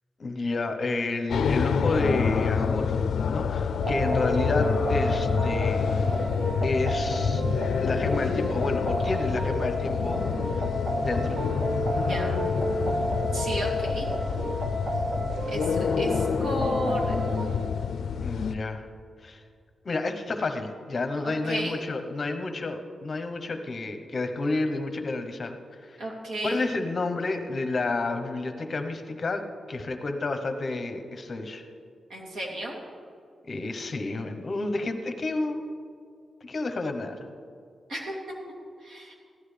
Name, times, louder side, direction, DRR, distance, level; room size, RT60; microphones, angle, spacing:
voice 1, 0.2-6.1 6.6-7.4 7.8-10.7 11.0-11.4 18.2-18.9 19.2-19.4 19.8-26.0 26.4-29.4 29.7-31.6 33.5-35.7 36.4-37.2, left 2 dB, 35° left, 7 dB, 0.9 m, -30 dB
sound 1, 1.3-18.5, left 6 dB, 80° left, 0.4 m, -28 dB
sound 2, 3.8-17.5, equal, 35° right, 1.6 m, -31 dB
voice 2, 12.1-12.4 13.3-14.1 15.5-17.1 21.2-21.8 26.0-26.6 32.1-32.8 37.9-38.4 38.8-39.1, right 1 dB, 85° right, -3 dB, 2.8 m, -33 dB
16.0 x 12.0 x 3.3 m, 2.3 s
wide cardioid pair, 170°, 0 cm